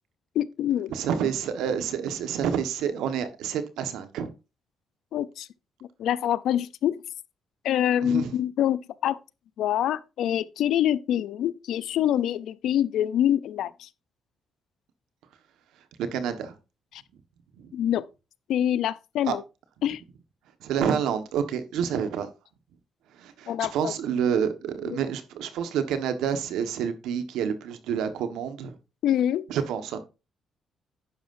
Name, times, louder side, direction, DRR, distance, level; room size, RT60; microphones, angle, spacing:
voice 1, 0.3-0.9 5.1-5.5 6.0-7.0 7.6-9.2 9.6-13.9 16.9-17.0 17.7-18.1 18.5-19.4 19.8-20.0 23.5-23.9 24.9-25.0 29.0-29.4, left 11 dB, 80° left, 0.6 m, -25 dB
voice 2, 0.9-4.3 8.0-8.3 16.1-16.5 17.6-17.7 19.3-19.4 20.6-22.3 23.2-28.7 29.5-30.0, right 8 dB, 85° right, 1.5 m, -28 dB
11.0 x 9.3 x 2.7 m
cardioid pair, 90°, 0 cm